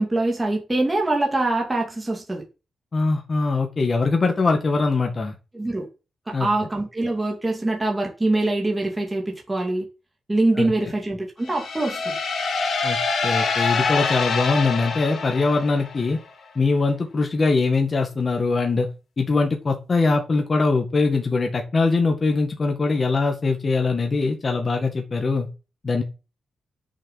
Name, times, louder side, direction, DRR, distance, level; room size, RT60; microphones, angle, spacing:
voice 1, 0.0-2.4 5.5-5.9 6.3-9.9 10.3-12.2, right 2 dB, 10° right, 2.7 m, -24 dB
voice 2, 2.9-5.3 6.3-6.5 10.6-10.7 12.8-16.2 16.6-18.9 19.2-25.5 25.8-26.0, left 3 dB, 30° left, 1.9 m, -22 dB
sound 1, 11.4-16.2, left 4 dB, 55° left, 3.2 m, -25 dB
10.0 x 6.7 x 7.5 m
wide cardioid pair, 175°, 0 cm